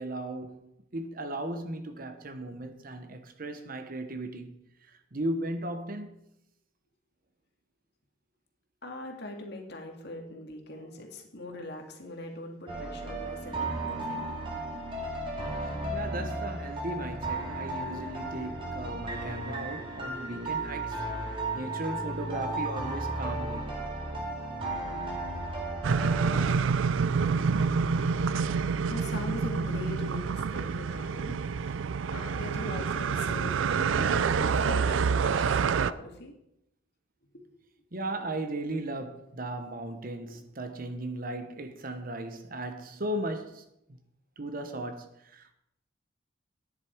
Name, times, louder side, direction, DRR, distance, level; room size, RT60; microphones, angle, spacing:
voice 1, 0.0-6.1 15.9-23.8 37.9-44.0 44.4-45.5, right 1 dB, 50° right, 1.1 m, -37 dB
voice 2, 8.8-14.2 28.9-31.7 32.1-36.3 37.3-37.4 40.1-40.4, left 2 dB, 60° left, 2.1 m, -41 dB
sound 1, 12.7-26.5, right 2 dB, 30° right, 2.5 m, -34 dB
sound 2, 25.8-35.9, right 5 dB, 85° right, 0.4 m, -27 dB
11.5 x 10.0 x 4.6 m
head